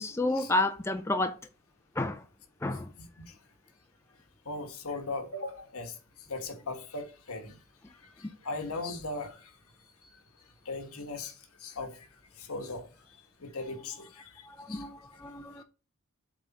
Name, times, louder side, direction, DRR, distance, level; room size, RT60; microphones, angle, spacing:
voice 1, 0.0-1.4 2.0-2.2 2.6-2.9 14.5-15.6, left 2 dB, 10° left, 0.4 m, -30 dB
voice 2, 4.4-6.0 6.3-7.6 8.2-9.5 10.0-10.1 10.6-12.1 12.4-12.9 13.4-14.3 14.7-14.8 15.6-15.7, left 3 dB, 80° left, 1.3 m, -38 dB
7.4 x 3.5 x 4.1 m
head